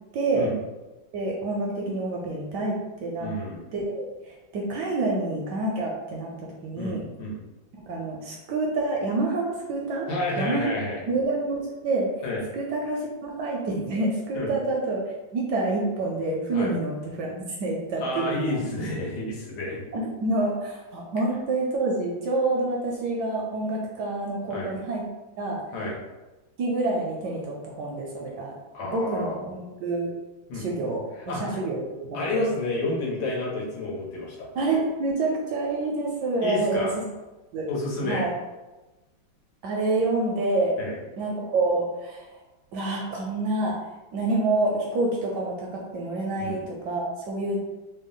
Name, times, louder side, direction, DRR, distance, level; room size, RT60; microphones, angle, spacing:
voice 1, 0.1-0.5 1.1-3.3 3.7-7.0 7.9-10.1 10.4-10.7 11.1-12.1 12.5-18.6 19.9-25.0 25.4-25.6 26.6-28.5 28.8-30.1 30.5-32.4 34.6-36.9 37.5-37.7 38.0-38.3 39.6-40.8 41.2-42.3 42.7-47.6, right 2 dB, 75° right, -1 dB, 1.0 m, -27 dB
voice 2, 3.2-3.6 6.7-7.4 10.1-11.0 12.2-12.4 14.3-14.5 16.5-16.7 18.0-19.8 24.5-24.7 25.7-26.0 28.7-29.4 30.5-30.7 31.3-31.4 32.1-34.5 36.4-36.9 37.7-38.2 40.8-41.0 46.4-46.6, left 2 dB, 85° left, -4 dB, 1.7 m, -30 dB
3.6 x 2.2 x 3.7 m, 1.1 s
omnidirectional pair, 2.2 m